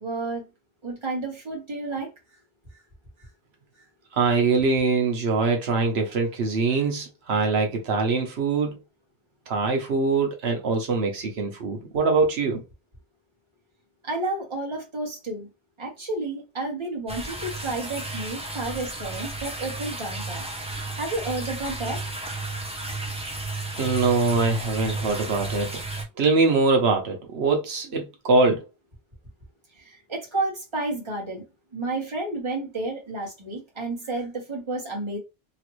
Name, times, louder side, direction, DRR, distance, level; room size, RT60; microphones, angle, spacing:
voice 1, 0.0-0.4 0.8-2.1 14.0-15.5 15.8-20.4 21.0-22.0 29.8-31.4 31.7-35.2, right 2 dB, 30° right, 1.2 m, -31 dB
voice 2, 4.1-8.8 9.5-12.6 23.8-25.7 26.2-28.6, right 4 dB, 80° right, 1.0 m, -23 dB
sound 1, 17.1-26.0, right 2 dB, 10° right, 0.5 m, -33 dB
3.1 x 2.4 x 3.0 m
omnidirectional pair, 1.1 m